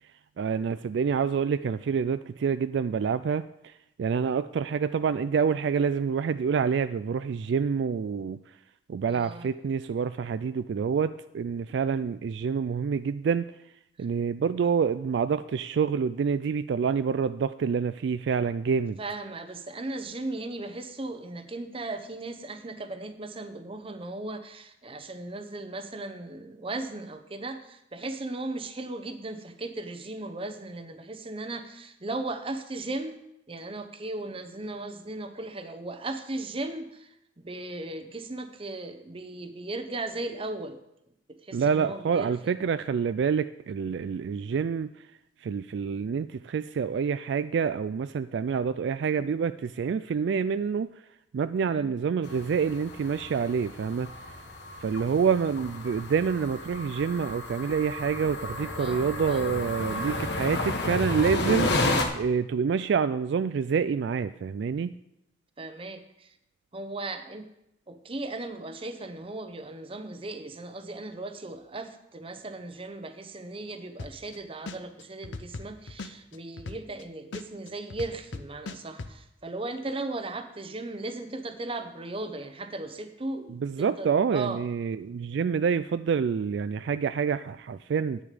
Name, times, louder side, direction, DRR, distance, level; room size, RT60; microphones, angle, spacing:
voice 1, 0.4-3.4 4.0-8.4 8.9-13.5 14.0-19.0 41.5-44.9 45.4-50.9 51.3-54.1 54.8-61.7 62.1-64.9 83.5-88.2, right 6 dB, 65° right, 13 dB, 0.3 m, -27 dB
voice 2, 9.1-9.5 19.0-33.2 33.5-40.8 41.4-42.5 51.6-51.9 58.8-59.6 65.6-66.3 66.7-67.5 67.9-83.5 83.8-84.6, right 2 dB, 30° right, 8 dB, 0.9 m, -37 dB
sound 1, 52.2-62.0, left 2 dB, 65° left, 1.3 m, -32 dB
sound 2, 74.0-74.4 74.7-77.0 77.3-79.1, left 3 dB, 85° left, 0.7 m, -38 dB
10.0 x 9.1 x 5.0 m, 0.80 s
head